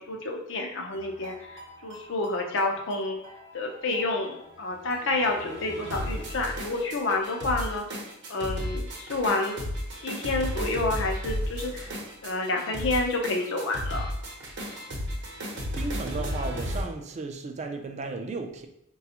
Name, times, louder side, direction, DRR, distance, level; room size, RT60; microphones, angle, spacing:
voice 1, 0.0-3.2 3.5-7.8 8.3-9.6 9.9-11.9 12.2-14.1, left 2 dB, 65° left, 2 dB, 0.6 m, -29 dB
sound 1, 0.9-16.8, equal, 60° right, 0.8 m, -34 dB
voice 2, 15.8-18.7, right 3 dB, 35° right, 5 dB, 0.4 m, -34 dB
4.0 x 2.3 x 2.8 m, 0.75 s
head